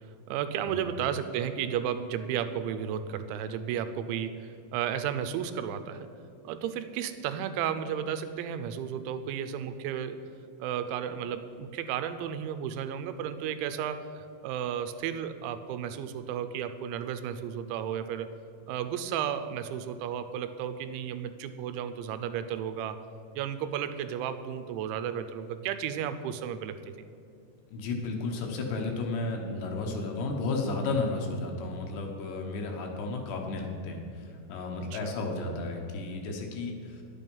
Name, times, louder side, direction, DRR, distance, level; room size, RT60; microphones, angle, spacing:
voice 1, 0.3-6.1 6.4-10.2 10.6-18.3 18.7-23.0 23.4-26.8 34.9-35.1, right 9 dB, 85° right, 10 dB, 2.9 m, -33 dB
voice 2, 27.7-37.0, left 3 dB, 75° left, 2 dB, 2.9 m, -33 dB
10.5 x 8.6 x 5.4 m, 2.4 s
omnidirectional pair, 5.3 m